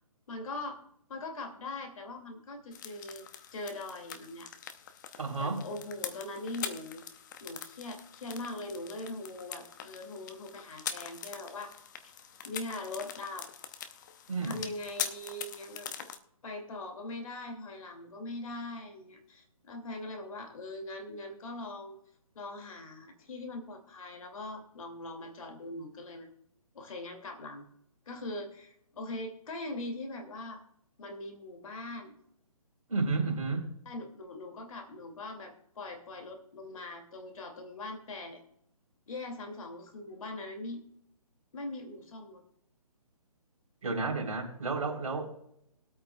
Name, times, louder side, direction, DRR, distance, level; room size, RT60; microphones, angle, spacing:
voice 1, 0.3-0.8 1.1-3.3 3.5-4.5 5.4-7.0 7.4-11.7 12.4-13.5 14.4-15.9 16.4-22.0 22.3-26.3 26.7-27.6 28.1-30.6 31.0-32.1 33.9-38.4 39.1-40.8 41.5-42.4, left 2 dB, 65° left, 4 dB, 2.6 m, -41 dB
sound 1, 2.7-16.2, left 8 dB, 30° left, 0.8 m, -43 dB
voice 2, 5.2-5.6 14.3-14.6 32.9-33.7 43.8-45.2, right 3 dB, 65° right, 0 dB, 3.8 m, -31 dB
21.5 x 8.6 x 2.3 m, 0.74 s
hypercardioid pair, 155°, 19 cm